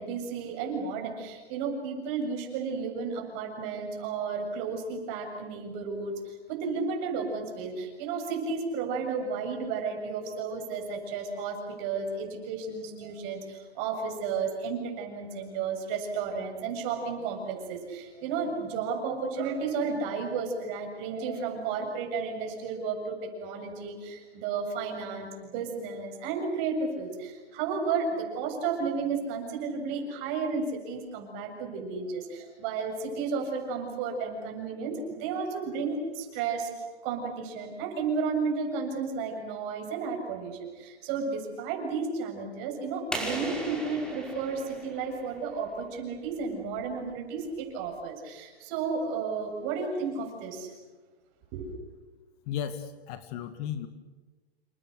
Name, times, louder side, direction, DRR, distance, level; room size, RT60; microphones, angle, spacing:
voice 1, 0.0-36.7 37.0-50.7 51.5-51.7, right 5 dB, 35° right, 3 dB, 7.5 m, -33 dB
sound 1, 43.1-45.8, right 1 dB, 5° left, 5.1 m, -37 dB
voice 2, 52.5-53.9, left 9 dB, 35° left, 10 dB, 1.8 m, -35 dB
29.0 x 27.5 x 6.6 m, 1.3 s
hypercardioid pair, 145°, 32 cm